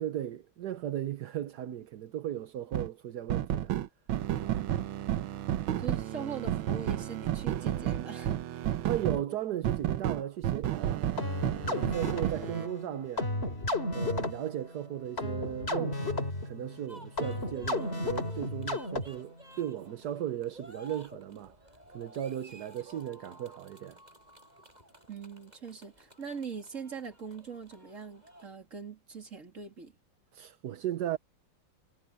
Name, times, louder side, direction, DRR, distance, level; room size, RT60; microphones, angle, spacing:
voice 1, 0.0-3.8 4.4-4.6 6.2-6.3 8.9-11.1 11.6-13.3 13.9-21.5 21.9-24.0 30.3-31.2, right 11 dB, 65° right, 1.3 m, -36 dB
sound 1, 2.7-2.9 3.3-9.2 9.6-12.7, right 12 dB, 90° right, 1.7 m, -31 dB
voice 2, 5.8-8.7 25.1-29.9, right 5 dB, 40° right, 3.3 m, -42 dB
sound 2, 11.2-19.4, left 2 dB, 30° left, 4.0 m, -34 dB
sound 3, 16.9-28.6, right 1 dB, 20° right, 8.2 m, -54 dB
omnidirectional pair, 2.1 m